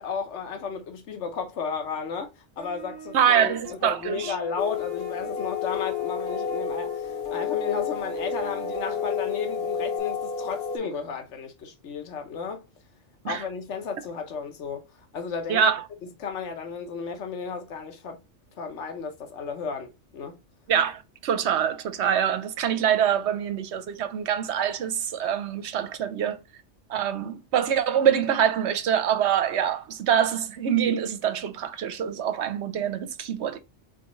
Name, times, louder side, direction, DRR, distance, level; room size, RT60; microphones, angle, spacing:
voice 1, 0.0-2.3 2.6-3.5 3.8-12.6 13.2-14.8 15.1-15.7 16.2-18.2 18.6-20.4, left 5 dB, 70° left, 1.3 m, -33 dB
sound 1, 2.6-10.0, left 4 dB, 85° left, 2.2 m, -41 dB
voice 2, 3.1-4.4 13.2-13.4 15.5-15.8 20.7-26.4 26.9-33.6, right 8 dB, 70° right, 0.9 m, -25 dB
sound 2, 4.6-10.8, left 7 dB, 50° left, 1.0 m, -30 dB
4.4 x 3.5 x 3.0 m
omnidirectional pair, 1.3 m